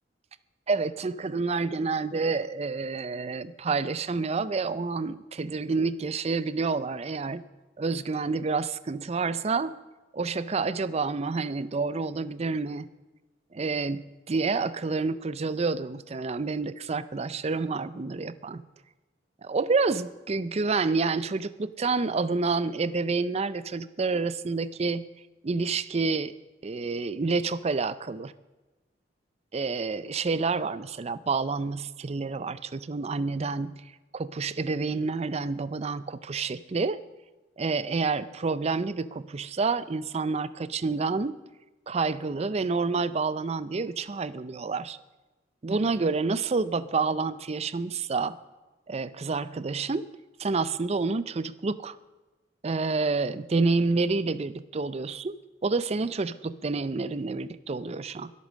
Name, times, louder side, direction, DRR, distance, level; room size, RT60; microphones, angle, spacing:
voice 1, 0.7-7.4 7.8-9.7 10.1-12.9 13.5-18.6 19.4-25.0 25.4-26.3 26.6-28.3 29.5-33.8 34.1-37.0 37.6-41.4 41.9-45.0 45.6-48.4 48.9-50.1 50.4-52.0 52.6-55.3 55.6-58.3, right 4 dB, 35° right, 16 dB, 0.5 m, -28 dB
23.0 x 8.4 x 6.3 m, 1.1 s
head